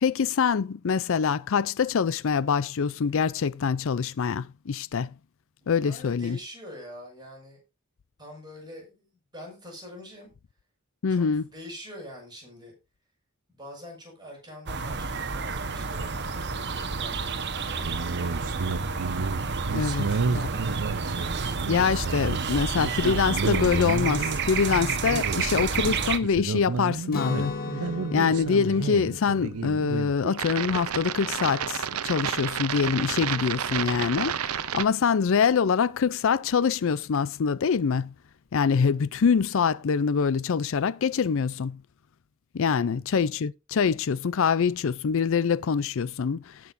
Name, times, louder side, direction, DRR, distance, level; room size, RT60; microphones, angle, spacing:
voice 1, 0.0-5.1 5.7-6.4 11.0-11.4 19.7-20.0 20.3-20.4 21.7-27.5 28.1-38.1 38.5-41.8 42.5-46.6, left 6 dB, 65° left, 0.4 m, -25 dB
voice 2, 5.6-7.6 8.2-9.1 9.3-10.3 11.1-12.7 13.5-18.8 19.8-20.8 32.8-33.6 42.6-43.0, left 1 dB, 20° right, 5.9 m, -45 dB
sound 1, 14.7-26.2, right 4 dB, 55° right, 1.2 m, -30 dB
sound 2, 17.8-34.8, right 5 dB, 85° right, 0.7 m, -31 dB
Guitar, 27.1-32.9, left 3 dB, 45° left, 2.0 m, -38 dB
18.0 x 6.1 x 2.7 m
head